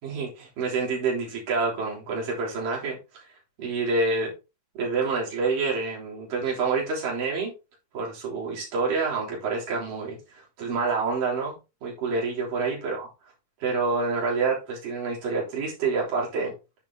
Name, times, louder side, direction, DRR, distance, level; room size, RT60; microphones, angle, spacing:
voice 1, 0.0-3.2 3.6-4.3 4.7-7.5 7.9-13.1 13.6-16.5, right 4 dB, 65° right, 5.1 m, -27 dB
9.8 x 9.0 x 2.9 m
omnidirectional pair, 4.1 m